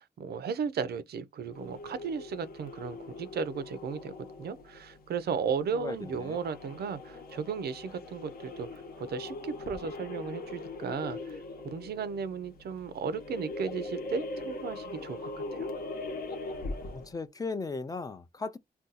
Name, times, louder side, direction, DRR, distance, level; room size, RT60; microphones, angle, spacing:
voice 1, 0.0-4.1 4.4-11.4 11.7-15.7, right 6 dB, 80° right, 0.5 m, -35 dB
sound 1, 1.5-17.2, left 2 dB, 70° left, 0.8 m, -41 dB
voice 2, 5.7-6.4 16.9-18.6, left 4 dB, 20° left, 0.3 m, -37 dB
2.6 x 2.2 x 3.9 m
wide cardioid pair, 140°, 16 cm